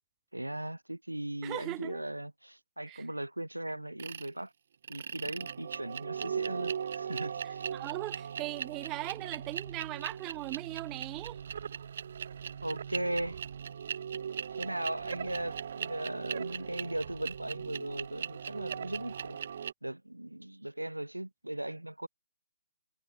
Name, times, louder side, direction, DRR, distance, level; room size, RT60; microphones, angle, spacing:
voice 1, 0.3-4.5 4.9-7.7 12.6-13.4 14.5-19.4 19.8-22.1, right 1 dB, 85° right, 0.7 m, -38 dB
voice 2, 1.4-2.0 2.9-3.0 7.7-11.4, right 20 dB, 20° right, 0.5 m, -39 dB
sound 1, 4.0-4.3 4.8-19.7, right 7 dB, 45° right, 0.8 m, -39 dB
figure-of-eight pair, 135°, 0 cm